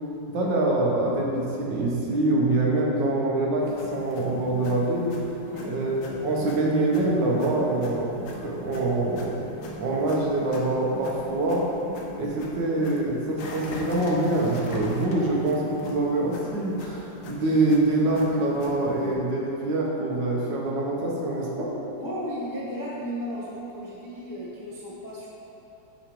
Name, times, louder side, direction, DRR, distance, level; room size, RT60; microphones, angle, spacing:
voice 1, 0.3-5.1 5.6-8.1 8.4-9.5 9.8-11.6 12.2-21.7, right 2 dB, 75° right, -3 dB, 1.7 m, -25 dB
sound 1, 3.6-19.1, left 1 dB, 85° left, 1.5 m, -40 dB
voice 2, 5.4-5.7 22.0-25.3, equal, 20° left, -7 dB, 0.5 m, -34 dB
8.8 x 5.2 x 3.0 m, 2.9 s
omnidirectional pair, 2.0 m